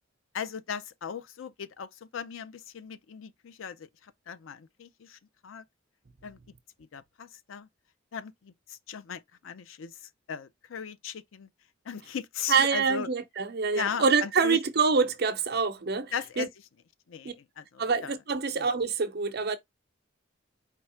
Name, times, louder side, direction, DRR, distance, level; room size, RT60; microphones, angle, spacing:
voice 1, 0.3-5.6 6.2-6.4 6.8-7.7 8.1-11.5 11.9-13.1 13.7-14.6 16.1-16.5 17.1-18.1 18.6-18.7, left 7 dB, 90° left, 0.5 m, -38 dB
voice 2, 12.5-16.4 17.2-17.3 17.8-19.6, right 5 dB, 55° right, 0.7 m, -26 dB
4.5 x 2.3 x 4.3 m
head